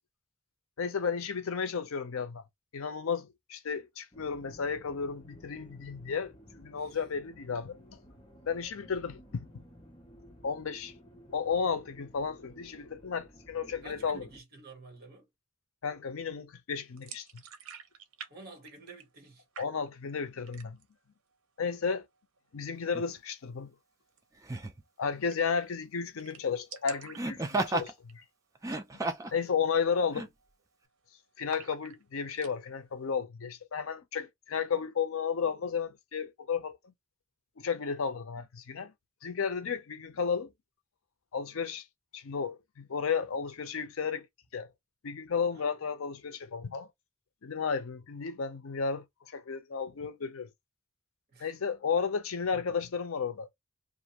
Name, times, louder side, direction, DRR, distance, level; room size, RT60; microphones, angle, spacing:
voice 1, 0.8-2.4 2.7-8.0 8.5-9.5 10.4-10.9 11.3-14.3 15.8-17.3 19.6-20.8 21.6-22.1 22.5-23.7 25.0-28.2 29.3-30.3 31.4-36.9 37.6-38.9 39.2-40.5 41.3-41.9 42.1-44.3 44.5-44.7 45.0-46.9 47.4-50.5 51.4-53.5, left 6 dB, 75° left, 0.5 m, -33 dB
sound 1, 4.1-14.4, equal, 20° left, 0.8 m, -55 dB
voice 2, 13.8-15.3 18.3-19.4 45.5-45.7 51.3-51.6, right 3 dB, 45° right, 1.4 m, -51 dB
sound 2, 17.0-18.3 18.6-19.3 19.5-20.1 20.4-21.0 21.3-21.4 21.7-22.4 24.1-24.2 24.5-24.6 24.9-25.0 25.3-25.7 25.9-26.0 26.2-28.3 28.6-28.9 29.2-29.3 29.9-30.1 30.4-31.0 31.5-32.5, right 7 dB, 85° right, 0.6 m, -48 dB
Laughter, 22.9-23.1 24.4-24.8 27.2-27.9 28.6-29.4 30.1-30.3, right 2 dB, 15° right, 0.3 m, -32 dB
2.5 x 2.5 x 2.9 m
head